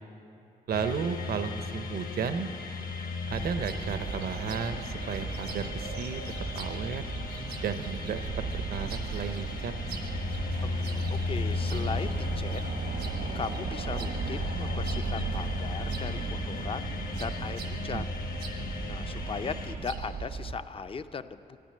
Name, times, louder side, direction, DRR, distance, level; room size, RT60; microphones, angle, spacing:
sound 1, 0.7-19.7, left 4 dB, 60° left, 1.5 m, -36 dB
voice 1, 0.7-2.5 3.3-6.2 6.5-7.0 7.6-8.2 8.5-9.7 17.9-18.0, right 6 dB, 70° right, 10 dB, 0.6 m, -33 dB
sound 2, 3.3-20.6, right 5 dB, 85° right, 1.0 m, -36 dB
voice 2, 10.6-12.6 13.3-16.9 17.2-18.1 18.8-21.6, left 5 dB, 35° left, 12 dB, 0.5 m, -38 dB
13.5 x 9.8 x 7.6 m, 2.7 s
cardioid pair, 95°, 17 cm